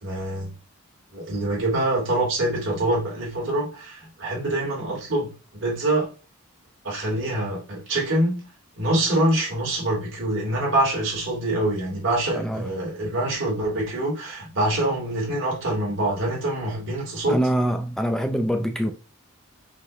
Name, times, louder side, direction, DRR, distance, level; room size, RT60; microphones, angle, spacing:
voice 1, 0.0-0.5 1.1-6.1 6.8-8.4 8.8-17.4, right 1 dB, 60° right, 2.5 m, -25 dB
voice 2, 12.3-12.7 17.3-18.9, right 1 dB, ahead, 0.4 m, -24 dB
5.5 x 2.7 x 3.1 m
head